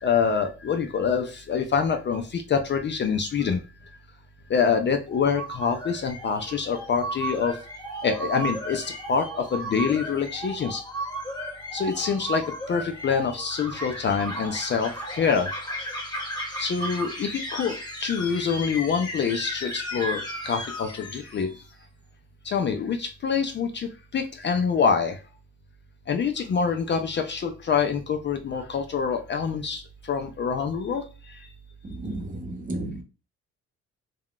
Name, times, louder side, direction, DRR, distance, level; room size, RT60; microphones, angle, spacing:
voice 1, 0.0-3.6 4.5-7.6 8.0-10.8 11.7-12.4 12.7-15.5 16.6-17.7 18.0-21.5 22.5-25.2 26.1-29.8 30.1-31.0, left 6 dB, 40° left, 6 dB, 0.4 m, -26 dB
sound 1, 5.1-21.6, right 1 dB, 15° left, 0.9 m, -35 dB
voice 2, 31.8-33.0, right 1 dB, 25° right, 3 dB, 0.8 m, -33 dB
3.5 x 2.2 x 2.4 m, 0.32 s
cardioid pair, 90°, 30 cm